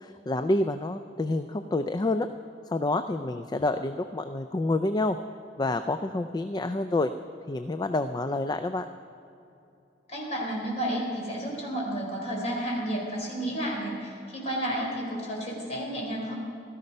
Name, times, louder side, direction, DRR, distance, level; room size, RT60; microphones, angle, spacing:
voice 1, 0.0-2.3 2.7-5.2 5.6-7.1 7.5-8.9, left 2 dB, 25° left, 9 dB, 0.4 m, -28 dB
voice 2, 10.1-16.3, right 1 dB, 40° left, -2 dB, 3.9 m, -31 dB
16.0 x 13.0 x 5.4 m, 2.7 s
head